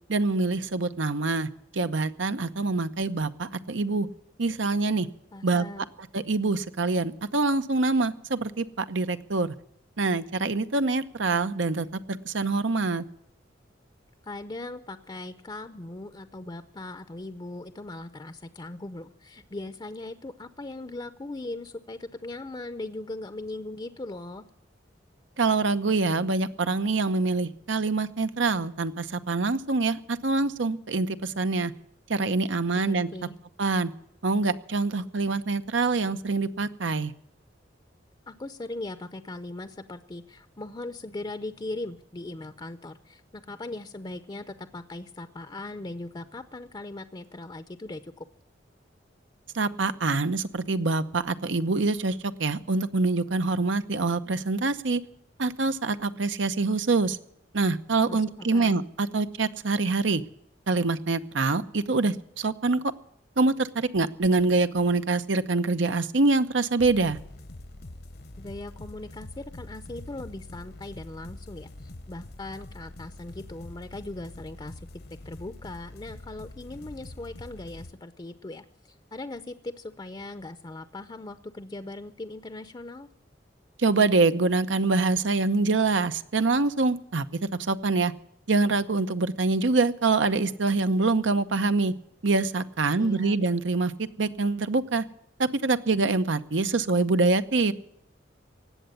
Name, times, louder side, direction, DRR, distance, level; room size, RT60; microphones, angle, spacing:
voice 1, 0.1-4.1 4.4-5.1 5.4-5.6 6.1-9.5 10.0-13.0 25.4-31.7 32.1-33.1 33.6-33.9 34.2-37.1 49.5-55.0 55.4-57.2 57.5-60.2 60.7-62.8 63.4-67.2 83.8-87.2 87.6-88.1 88.5-91.9 92.2-93.9 94.2-95.0 95.4-97.7, right 3 dB, 90° right, 11 dB, 0.9 m, -25 dB
voice 2, 5.3-5.9 14.2-24.4 32.7-33.4 38.3-48.3 58.1-58.8 68.4-74.8 75.2-83.1 93.0-93.4, left 2 dB, 25° left, 12 dB, 0.6 m, -39 dB
sound 1, 66.8-77.9, left 1 dB, 60° left, 1.0 m, -44 dB
18.5 x 8.0 x 9.7 m, 0.76 s
head